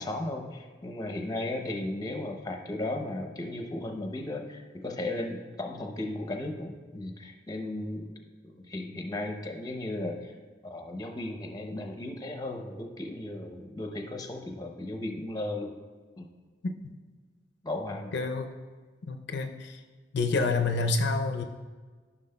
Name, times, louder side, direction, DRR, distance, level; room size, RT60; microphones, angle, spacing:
voice 1, 0.0-10.4 10.6-15.7 16.2-16.3 17.6-18.1, left 1 dB, 20° left, 4 dB, 0.7 m, -35 dB
voice 2, 18.1-18.5 19.1-19.8 20.1-21.4, left 3 dB, 65° left, 5 dB, 0.5 m, -28 dB
13.5 x 6.0 x 2.2 m, 1.4 s
head